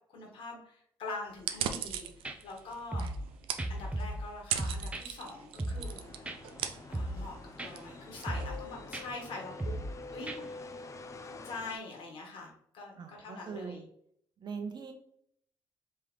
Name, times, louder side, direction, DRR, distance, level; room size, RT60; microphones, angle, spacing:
voice 1, 0.1-3.1 3.7-6.3 6.9-9.8 10.1-10.4 11.2-13.8, left 3 dB, 75° left, 0 dB, 1.4 m, -44 dB
sound 1, 1.3-9.1, right 9 dB, 85° right, 0.4 m, -40 dB
sound 2, 1.9-2.0 2.3-2.4 2.9-3.3 3.6-4.3 4.6-5.0 5.6-6.0 6.3-6.4 6.9-7.3 7.6-7.7 8.3-8.6 8.9-9.1 9.6-10.0 10.3-10.4, right 1 dB, 15° right, 0.5 m, -36 dB
sound 3, 5.8-11.8, left 3 dB, 35° left, 0.5 m, -47 dB
voice 2, 13.0-13.8 14.4-14.9, right 5 dB, 55° right, 5 dB, 0.9 m, -41 dB
3.7 x 3.2 x 3.1 m, 0.69 s
cardioid pair, 80°, 9 cm